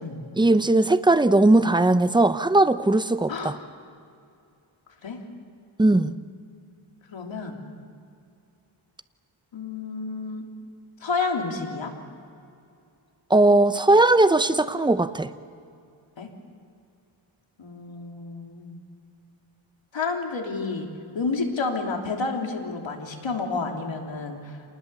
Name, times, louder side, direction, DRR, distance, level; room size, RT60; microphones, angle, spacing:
voice 1, 0.4-3.5 5.8-6.1 13.3-15.3, right 2 dB, 10° right, 12 dB, 0.7 m, -19 dB
voice 2, 7.1-7.6 9.5-10.4 11.0-11.9 16.2-16.3 17.6-18.8 19.9-20.9 21.1-24.6, left 4 dB, 65° left, 1 dB, 3.4 m, -30 dB
27.5 x 20.0 x 7.0 m, 2.5 s
wide cardioid pair, 95°, 49 cm